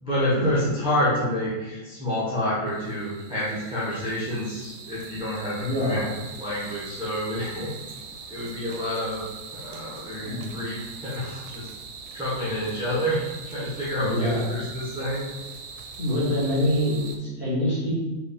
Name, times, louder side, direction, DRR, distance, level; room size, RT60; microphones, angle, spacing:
voice 1, 0.0-6.1 6.4-7.7 8.3-9.3 9.5-11.7 12.1-15.2, left 1 dB, 5° right, -8 dB, 0.4 m, -28 dB
sound 1, 2.7-17.2, right 5 dB, 75° right, 1.3 m, -42 dB
voice 2, 5.6-6.0 10.2-10.5 12.4-12.5 14.0-14.5 16.0-18.0, equal, 35° left, -7 dB, 1.1 m, -25 dB
4.3 x 3.0 x 3.6 m, 1.1 s
omnidirectional pair, 2.3 m